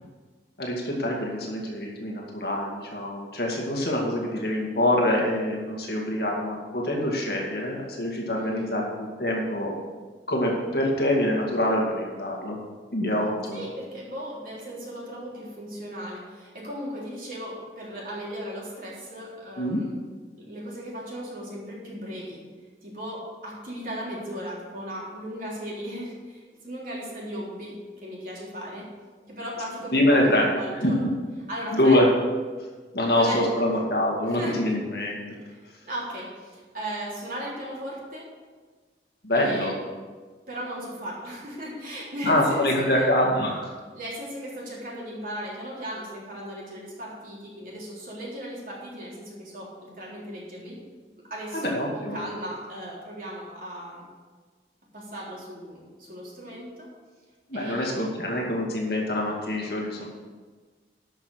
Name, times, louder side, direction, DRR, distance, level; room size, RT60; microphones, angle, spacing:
voice 1, 0.6-9.8 10.3-12.6 12.9-13.6 19.6-19.8 29.9-30.5 30.8-31.1 31.7-32.1 32.9-35.2 39.2-39.7 42.2-43.7 51.5-52.2 57.5-60.0, left 1 dB, 60° left, -1 dB, 2.1 m, -25 dB
voice 2, 8.4-8.7 13.5-19.9 20.4-22.4 22.8-28.9 29.3-31.0 31.5-32.0 33.2-33.5 34.3-34.8 35.5-35.6 35.9-38.3 39.3-39.7 40.5-43.1 43.9-50.8 51.3-54.0 54.9-56.9 57.5-58.1, equal, 50° right, -5 dB, 3.7 m, -36 dB
12.5 x 6.1 x 6.4 m, 1.4 s
head